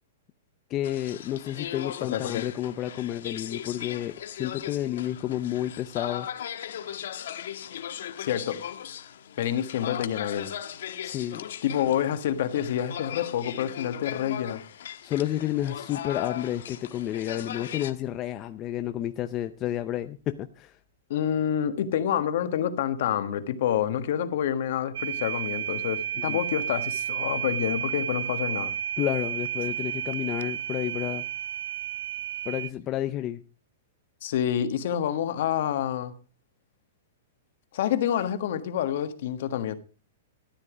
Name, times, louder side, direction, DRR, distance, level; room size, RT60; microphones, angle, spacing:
voice 1, 0.7-6.3 11.0-11.4 15.0-20.7 26.2-26.4 29.0-31.2 32.5-33.4, left 12 dB, 20° left, 0.5 m, -30 dB
sound 1, 0.8-17.9, left 10 dB, 70° left, 1.3 m, -38 dB
voice 2, 2.1-2.4 8.2-8.6 9.4-10.5 11.6-14.6 21.1-28.7 34.2-36.1 37.7-39.7, left 10 dB, 55° left, 1.5 m, -28 dB
sound 2, 24.9-32.7, right 10 dB, 75° right, 0.6 m, -32 dB
13.5 x 10.0 x 5.0 m
hypercardioid pair, 170°, 0 cm